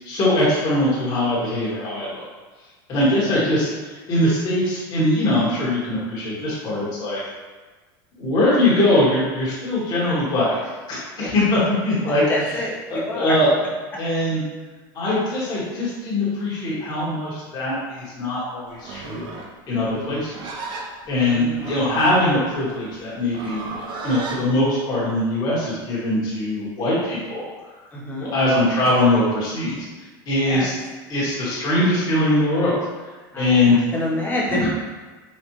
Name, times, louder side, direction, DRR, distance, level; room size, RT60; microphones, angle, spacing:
voice 1, 0.0-2.2 2.9-7.2 8.2-10.6 10.9-12.2 12.9-13.5 14.0-14.4 14.9-19.3 19.7-20.3 20.7-20.8 21.1-23.6 24.0-27.5 28.2-29.8 30.3-30.7 31.1-32.7 33.4-33.8, left 1 dB, 35° left, -8 dB, 1.4 m, -21 dB
voice 2, 3.0-3.3 11.2-11.3 12.3-13.4 19.9-20.2 21.3-21.8 27.9-28.3 28.8-28.9 30.4-30.7 33.3-34.7, left 1 dB, 15° left, -4 dB, 0.9 m, -28 dB
Livestock farm animals working animals, 18.7-24.4, right 3 dB, 45° right, 0.5 m, -35 dB
4.2 x 2.4 x 3.0 m, 1.3 s
supercardioid pair, 125°, 11 cm